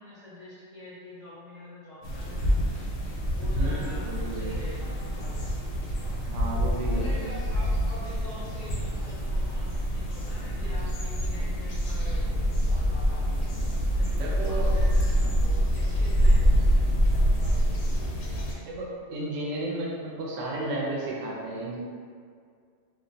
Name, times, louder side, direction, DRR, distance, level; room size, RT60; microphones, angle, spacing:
voice 1, 0.0-2.7 3.3-5.5 6.9-13.3 13.9-18.6, left 1 dB, 60° left, -10 dB, 0.4 m, -45 dB
sound 1, 2.0-18.5, equal, 90° left, 1.0 m, -26 dB
voice 2, 3.4-4.5 6.2-7.3 13.5-13.6 14.2-14.7 18.7-21.8, right 1 dB, 80° right, -4 dB, 0.9 m, -33 dB
2.4 x 2.0 x 2.6 m, 2.2 s
omnidirectional pair, 1.3 m